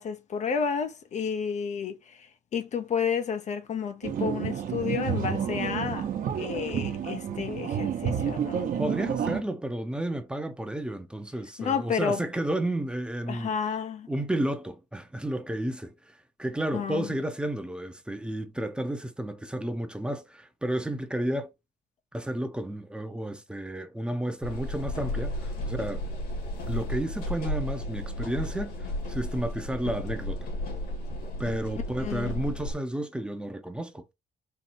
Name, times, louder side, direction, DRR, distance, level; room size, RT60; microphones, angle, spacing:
voice 1, 0.0-6.1 6.4-8.7 11.6-12.2 13.3-14.1 16.7-17.1 32.0-32.4, left 6 dB, 45° left, 0.6 m, -31 dB
sound 1, 4.0-9.4, right 8 dB, 55° right, 1.0 m, -30 dB
voice 2, 8.8-13.5 14.1-21.5 22.1-26.0 26.7-30.5 31.4-34.1, right 1 dB, 5° right, 0.7 m, -32 dB
sound 2, 24.4-32.7, left 1 dB, 80° left, 2.3 m, -33 dB
4.5 x 2.6 x 4.3 m
cardioid pair, 110°, 17 cm